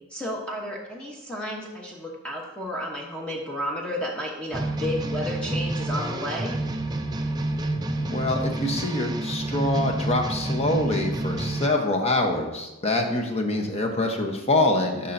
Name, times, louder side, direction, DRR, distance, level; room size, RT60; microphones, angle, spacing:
voice 1, 0.1-6.6, left 1 dB, 5° left, -2 dB, 0.9 m, -32 dB
sound 1, 4.5-11.7, right 2 dB, 20° right, 0.4 m, -28 dB
voice 2, 8.0-15.1, left 2 dB, 30° left, 2 dB, 0.9 m, -25 dB
11.0 x 5.6 x 2.6 m, 1.0 s
head